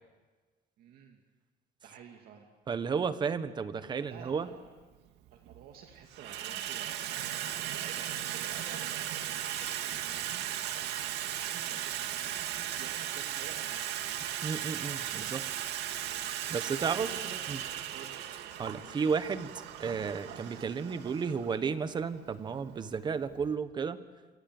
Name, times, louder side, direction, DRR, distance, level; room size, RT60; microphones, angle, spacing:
voice 1, 0.8-1.2 1.8-2.5 3.8-4.7 5.3-7.1 7.7-8.8 9.2-11.0 11.2-14.3 15.1-16.1 16.6-17.6 17.9-18.3, right 7 dB, 60° right, 3 dB, 2.5 m, -52 dB
voice 2, 2.7-4.5 14.4-15.5 16.5-17.1 17.5-17.6 18.6-19.5 19.8-24.0, right 5 dB, 25° right, 12 dB, 1.2 m, -33 dB
Water tap faucet / Sink (filling or washing), 4.2-4.3 5.2-5.6 5.9-23.5, right 11 dB, 80° right, 2.2 m, -37 dB
27.5 x 27.0 x 7.8 m, 1.3 s
cardioid pair, 180°, 17 cm